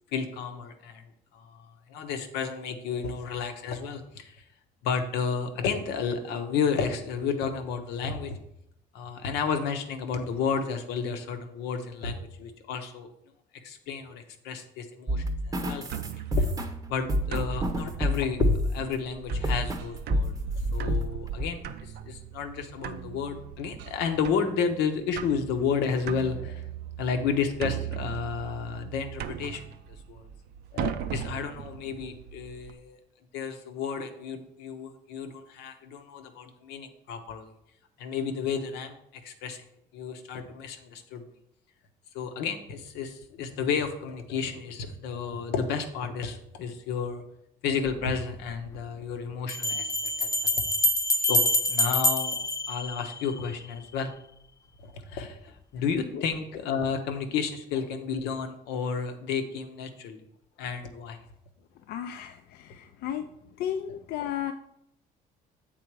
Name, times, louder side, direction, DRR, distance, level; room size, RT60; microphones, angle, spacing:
voice 1, 0.1-1.1 1.3-4.4 4.8-8.4 8.9-13.1 13.5-15.9 16.4-16.5 16.9-20.3 20.7-26.6 27.0-29.6 30.1-30.3 30.7-33.0 33.3-37.5 38.0-39.6 39.9-41.2 42.1-47.2 47.6-50.5 51.2-51.4 51.7-52.4 52.7-54.1 54.8-60.2 60.6-61.2, left 6 dB, 90° left, 6 dB, 0.8 m, -32 dB
sound 1, 15.1-18.9 19.3-19.8 20.1-21.0 21.4-21.5, left 1 dB, 20° right, 0.7 m, -28 dB
sound 2, 15.9-32.7, right 10 dB, 70° right, 0.5 m, -38 dB
sound 3, 47.9-48.0 49.5-53.5, left 1 dB, 20° left, 0.5 m, -26 dB
voice 2, 61.9-63.3 63.6-64.5, left 10 dB, 70° left, 6 dB, 0.4 m, -34 dB
7.5 x 3.9 x 4.6 m, 0.75 s
cardioid pair, 110°, 17 cm